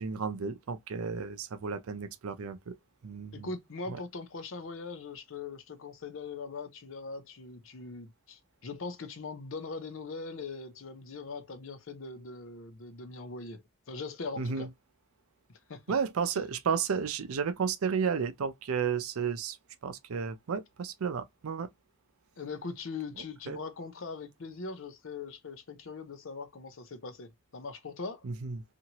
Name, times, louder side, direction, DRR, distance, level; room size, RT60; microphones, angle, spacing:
voice 1, 0.0-2.8 3.0-3.5 3.9-4.0 14.4-14.7 15.9-19.6 19.8-21.7 23.5-23.6 28.2-28.6, right 6 dB, 85° right, 0.5 m, -32 dB
voice 2, 3.3-13.6 13.9-14.7 15.7-15.8 22.4-28.2, left 4 dB, 65° left, 0.6 m, -41 dB
2.9 x 2.5 x 2.8 m
head